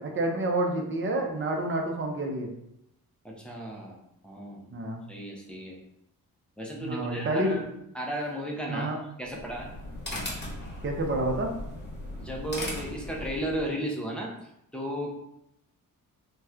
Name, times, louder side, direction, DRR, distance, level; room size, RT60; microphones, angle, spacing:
voice 1, 0.0-2.5 4.7-5.0 6.8-7.6 8.7-9.0 10.8-11.5, right 1 dB, 35° right, 1 dB, 0.6 m, -28 dB
voice 2, 3.2-5.8 6.6-7.7 7.9-9.7 12.2-14.3 14.7-15.2, right 1 dB, 5° left, -3 dB, 0.6 m, -35 dB
sound 1, 9.2-13.7, left 1 dB, 30° left, 1.0 m, -38 dB
2.9 x 2.2 x 3.6 m, 0.79 s
cardioid pair, 110°, 35 cm